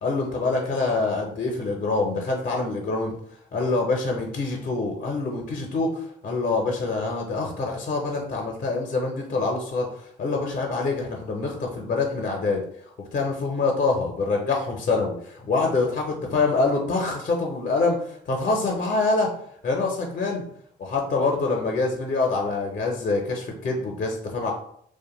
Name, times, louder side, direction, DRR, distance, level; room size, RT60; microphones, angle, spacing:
voice 1, 0.0-3.1 3.5-12.6 13.1-19.3 19.6-20.4 20.8-24.5, left 3 dB, 45° left, 1 dB, 0.5 m, -25 dB
2.5 x 2.1 x 2.9 m, 0.68 s
cardioid pair, 90°, 20 cm